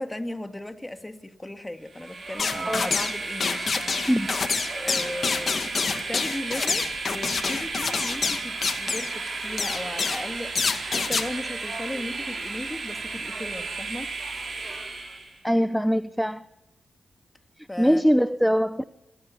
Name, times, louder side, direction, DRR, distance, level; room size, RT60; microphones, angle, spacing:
voice 1, 0.0-4.0 4.7-14.1 17.7-18.0, left 1 dB, 15° left, 2.4 m, -36 dB
Train, 1.9-15.4, right 3 dB, 55° right, 6.5 m, -34 dB
sound 1, 2.4-3.2 3.4-9.1 9.6-10.2 10.6-11.3, left 5 dB, 60° left, 1.9 m, -27 dB
voice 2, 15.4-16.5 17.6-18.8, equal, ahead, 0.7 m, -22 dB
26.0 x 17.5 x 7.0 m
cardioid pair, 55°, 0 cm